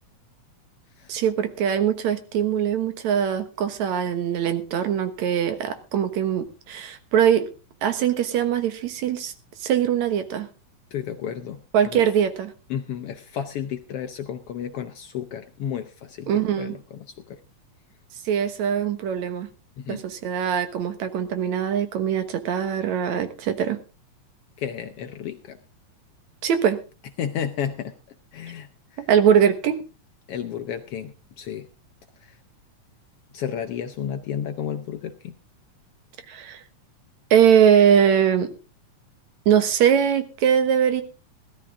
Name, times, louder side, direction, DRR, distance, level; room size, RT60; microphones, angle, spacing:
voice 1, 1.1-7.5 7.8-9.3 9.6-10.5 11.7-12.5 16.3-16.8 18.3-19.5 19.9-23.8 26.4-26.8 29.1-29.8 36.3-36.6 37.3-38.5 39.5-41.0, right 8 dB, 70° right, 10 dB, 2.6 m, -21 dB
voice 2, 10.9-12.0 12.7-17.4 19.8-20.0 24.6-25.6 27.2-27.9 28.3-29.1 30.3-31.7 32.2-32.4 33.3-35.3, left 8 dB, 70° left, 8 dB, 1.5 m, -32 dB
17.0 x 12.5 x 3.7 m, 0.31 s
omnidirectional pair, 3.4 m